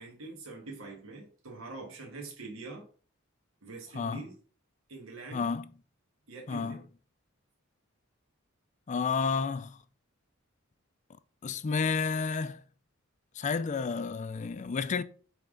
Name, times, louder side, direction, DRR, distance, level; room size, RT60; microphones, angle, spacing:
voice 1, 0.0-2.9 3.6-4.3 4.9-5.5 6.3-6.8, right 3 dB, 85° right, 1.6 m, -44 dB
voice 2, 3.9-4.2 5.3-5.7 6.5-6.8 8.9-9.8 11.4-12.6 13.3-15.0, left 5 dB, 35° left, 0.4 m, -31 dB
8.7 x 3.5 x 3.8 m
head